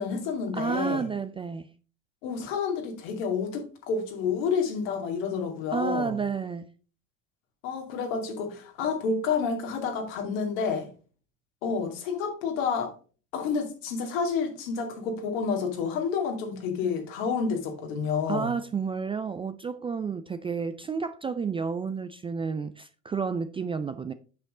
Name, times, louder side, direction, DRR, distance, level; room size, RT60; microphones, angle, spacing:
voice 1, 0.0-1.1 2.2-6.2 7.6-10.9 11.6-12.9 13.3-18.5, left 5 dB, 70° left, 2.6 m, -29 dB
voice 2, 0.5-1.7 5.7-6.7 18.3-24.1, right 5 dB, 15° right, 0.3 m, -31 dB
8.2 x 6.3 x 3.7 m
hypercardioid pair, 85°, 40 cm